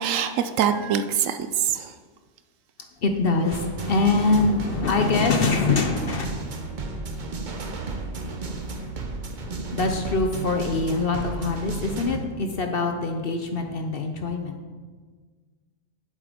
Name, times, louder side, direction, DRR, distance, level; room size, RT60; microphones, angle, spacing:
voice 1, 0.0-1.9, right 8 dB, 70° right, 9 dB, 0.9 m, -24 dB
voice 2, 3.0-6.3 9.7-14.6, left 3 dB, 50° left, 5 dB, 0.8 m, -24 dB
sound 1, 3.5-12.2, right 3 dB, 40° right, 0.8 m, -33 dB
8.0 x 7.6 x 5.0 m, 1.5 s
omnidirectional pair, 1.5 m